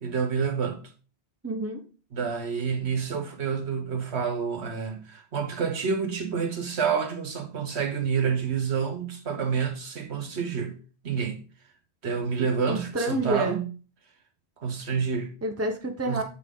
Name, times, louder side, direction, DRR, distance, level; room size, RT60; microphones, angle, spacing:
voice 1, 0.0-0.8 2.1-10.7 11.0-11.4 12.0-13.7 14.6-15.3 16.1-16.2, right 6 dB, 75° right, 1.4 m, -28 dB
voice 2, 1.4-1.8 12.7-13.6 15.4-16.2, right 2 dB, 15° right, 0.9 m, -28 dB
8.4 x 4.7 x 3.7 m
omnidirectional pair, 1.1 m